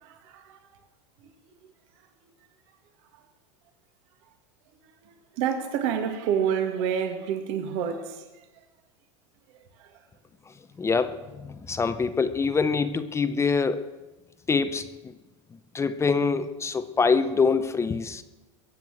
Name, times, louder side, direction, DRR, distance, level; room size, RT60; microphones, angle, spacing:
voice 1, 0.0-0.6 5.0-8.2 9.8-9.9, right 8 dB, 60° right, 2.2 m, -28 dB
voice 2, 10.8-13.9 14.5-15.1 15.7-18.2, left 5 dB, 15° left, 0.8 m, -25 dB
22.5 x 7.6 x 7.6 m
supercardioid pair, 125°, 18 cm